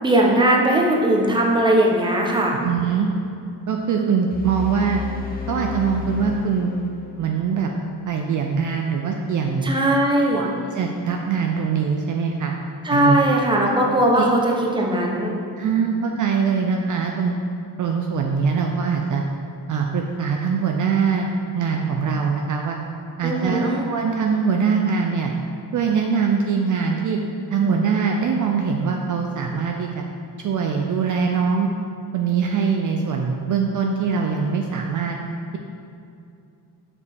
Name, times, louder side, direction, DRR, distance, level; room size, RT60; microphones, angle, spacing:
voice 1, 0.0-2.6 9.6-10.4 12.8-15.3 23.2-23.9, right 1 dB, 10° right, -1 dB, 0.7 m, -19 dB
voice 2, 2.6-3.1 3.7-5.0 5.5-6.7 7.2-7.7 8.1-9.7 10.3-12.5 12.9-13.4 14.1-14.3 15.6-17.4 17.8-19.2 19.7-22.8 23.2-25.3 25.7-27.2 27.5-30.0 30.4-31.7 32.1-35.2, right 6 dB, 50° right, 2 dB, 0.5 m, -22 dB
sound 1, 4.3-7.4, left 6 dB, 25° left, 0.5 m, -32 dB
6.8 x 5.2 x 3.4 m, 2.5 s
cardioid pair, 130°, 41 cm